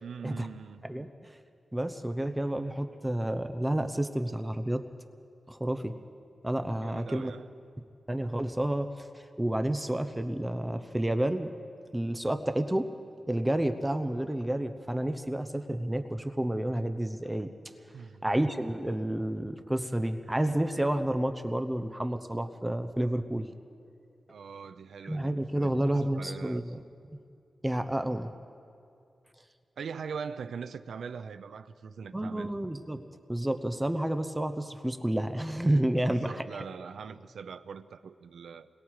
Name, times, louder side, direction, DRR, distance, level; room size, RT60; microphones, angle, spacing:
voice 1, 0.0-0.9 6.8-7.4 17.9-18.3 24.3-26.6 29.8-32.5 36.1-38.7, right 6 dB, 85° right, 0.6 m, -42 dB
voice 2, 0.8-1.4 1.7-4.9 5.5-6.0 6.4-7.3 8.1-11.5 11.9-12.9 13.3-17.5 18.2-23.5 25.0-26.8 27.6-28.3 32.1-36.6, right 1 dB, 10° right, 0.9 m, -30 dB
29.5 x 21.5 x 4.8 m
wide cardioid pair, 110°, 0 cm